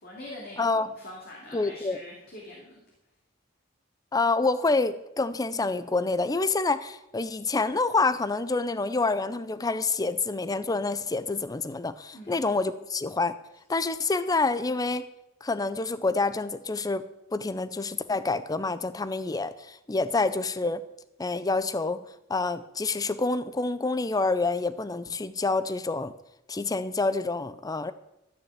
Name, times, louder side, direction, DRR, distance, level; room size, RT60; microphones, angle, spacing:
voice 1, 0.0-2.8 12.1-12.4, left 1 dB, 50° left, -2 dB, 2.8 m, -44 dB
voice 2, 0.6-0.9 1.5-2.0 4.1-13.3 13.7-15.1 15.4-20.8 21.2-22.0 22.3-26.1 26.5-27.9, left 3 dB, 20° left, 13 dB, 0.5 m, -27 dB
14.0 x 6.4 x 8.7 m, 0.89 s
head